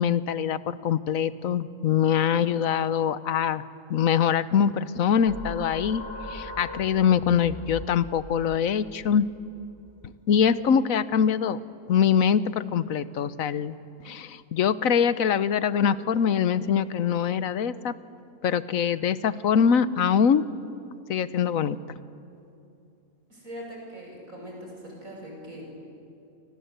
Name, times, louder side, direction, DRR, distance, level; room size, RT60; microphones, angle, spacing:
voice 1, 0.0-3.6 3.9-6.0 6.3-9.3 10.3-11.6 11.9-13.8 14.0-17.9 18.4-20.4 21.1-21.8, left 8 dB, 85° left, 14 dB, 1.3 m, -23 dB
sound 1, 5.3-10.5, left 1 dB, 15° left, 1.9 m, -41 dB
voice 2, 23.3-25.6, equal, 85° right, -1 dB, 7.5 m, -41 dB
29.5 x 24.5 x 8.1 m, 2.7 s
omnidirectional pair, 1.4 m